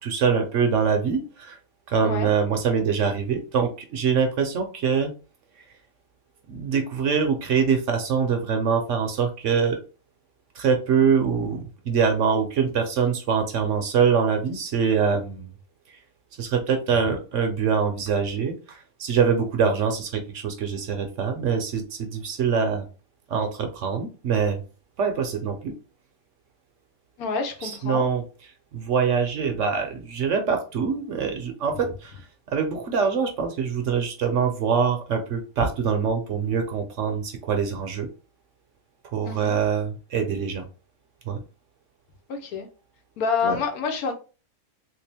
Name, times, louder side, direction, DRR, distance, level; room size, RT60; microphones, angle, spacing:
voice 1, 0.0-1.6 1.9-5.1 6.5-9.8 10.6-15.5 16.4-22.8 23.3-24.6 25.0-25.7 27.6-28.2 28.7-32.2 32.5-38.1 39.1-40.6 41.3-41.4 43.4-43.6, right 6 dB, 65° right, 0.9 m, -24 dB
voice 2, 27.2-28.0 39.2-39.6 42.3-42.7 43.2-44.1, left 5 dB, 75° left, 1.3 m, -27 dB
3.3 x 2.9 x 3.3 m
omnidirectional pair, 1.6 m